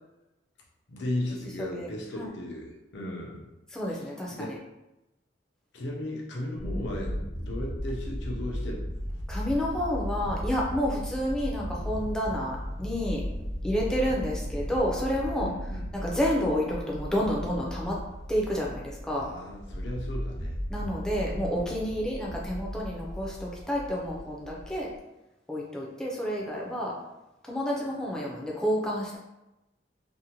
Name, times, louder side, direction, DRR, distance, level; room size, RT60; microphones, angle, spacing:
voice 1, 0.9-2.7 2.9-3.5 3.9-4.0 4.3-4.5 5.7-8.8 14.1-14.2 15.4-15.9 19.1-20.6, left 1 dB, 75° left, -2 dB, 0.6 m, -36 dB
voice 2, 3.7-4.5 9.3-13.2 13.6-15.5 15.9-18.0 18.3-19.3 20.7-24.9 25.5-26.9 27.4-29.2, equal, 5° left, -4 dB, 0.4 m, -30 dB
sound 1, 6.6-25.0, equal, 85° right, 1.0 m, -36 dB
2.6 x 2.1 x 2.8 m, 0.96 s
head